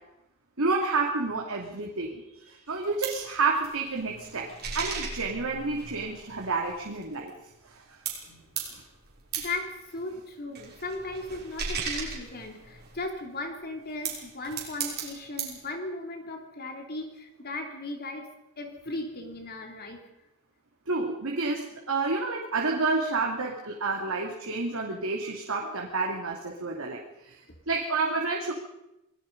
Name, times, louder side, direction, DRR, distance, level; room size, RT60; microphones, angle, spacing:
voice 1, 0.6-4.5 4.7-7.3 7.6-7.8 20.9-27.4 27.7-28.5, right 3 dB, 65° right, -1 dB, 2.8 m, -29 dB
sound 1, 2.7-7.8 8.1-13.1 13.7-15.6, right 6 dB, 45° right, 6.2 m, -37 dB
voice 2, 9.4-18.3 18.6-20.0, left 2 dB, 45° left, 4 dB, 3.1 m, -37 dB
28.0 x 19.5 x 5.4 m, 0.91 s
head